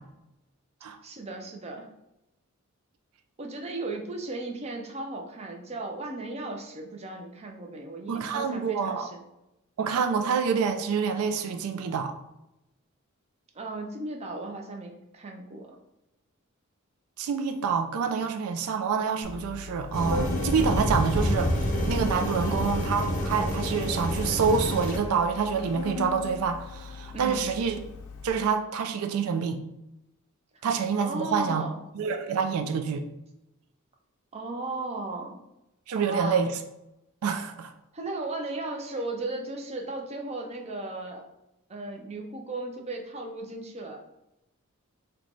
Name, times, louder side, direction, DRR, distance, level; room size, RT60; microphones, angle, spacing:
voice 1, 1.0-1.9 3.4-9.2 13.5-15.8 22.3-22.6 27.1-27.4 31.0-31.8 34.3-35.4 35.9-36.4 37.9-41.2 41.7-44.0, right 2 dB, 30° right, 2 dB, 0.5 m, -36 dB
voice 2, 8.1-9.1 9.8-12.1 17.2-21.5 21.9-27.8 28.2-29.6 30.6-31.6 31.9-33.0 35.9-36.5 37.2-37.7, right 6 dB, 90° right, 6 dB, 0.4 m, -27 dB
Organ, 19.2-28.3, left 4 dB, 85° left, 0.4 m, -40 dB
sound 1, 19.9-25.0, equal, 35° left, 0.6 m, -28 dB
3.0 x 2.2 x 3.9 m, 0.90 s
head